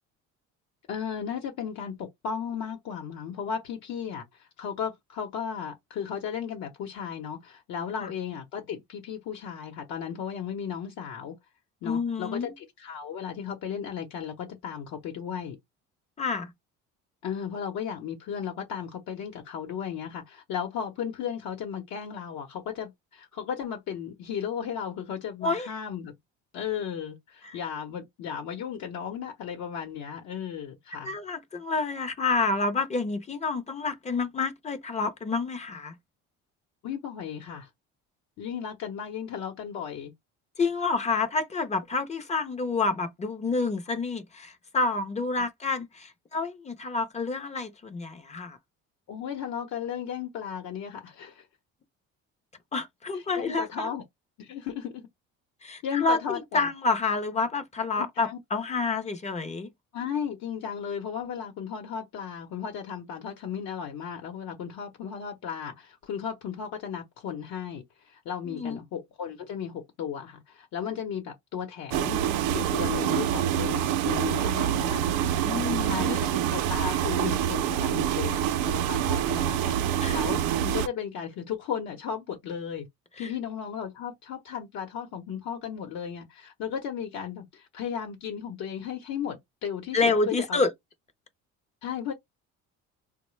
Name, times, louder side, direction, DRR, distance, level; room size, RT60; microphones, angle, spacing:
voice 1, 0.9-11.4 11.8-15.6 17.2-26.1 26.5-31.1 36.8-37.7 38.4-40.1 49.1-51.5 53.1-54.0 54.4-55.1 55.8-56.7 58.0-58.4 59.9-72.2 72.5-75.2 75.8-82.9 83.2-90.6 91.8-92.1, left 8 dB, 70° left, 0.8 m, -35 dB
voice 2, 11.8-12.5 16.2-16.5 25.4-25.7 27.4-27.6 31.0-35.9 40.6-48.6 52.7-53.9 55.6-59.7 68.5-68.8 75.4-76.3 80.0-80.2 83.2-83.3 89.9-90.7, left 3 dB, 25° left, 0.5 m, -28 dB
sound 1, 71.9-80.9, right 10 dB, 85° right, 0.5 m, -26 dB
3.7 x 2.1 x 3.0 m
cardioid pair, 125°, 30 cm